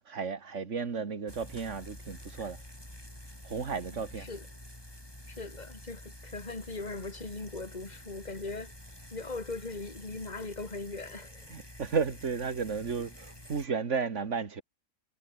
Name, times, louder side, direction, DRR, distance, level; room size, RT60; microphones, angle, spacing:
voice 1, 0.1-2.6 3.4-4.3 11.5-14.6, right 5 dB, 75° right, 2.1 m, -33 dB
sound 1, 1.3-13.7, left 1 dB, 20° left, 7.1 m, -49 dB
voice 2, 3.9-4.5 5.3-8.7 9.1-11.5, left 3 dB, 35° left, 2.8 m, -40 dB
omnidirectional pair, 1.3 m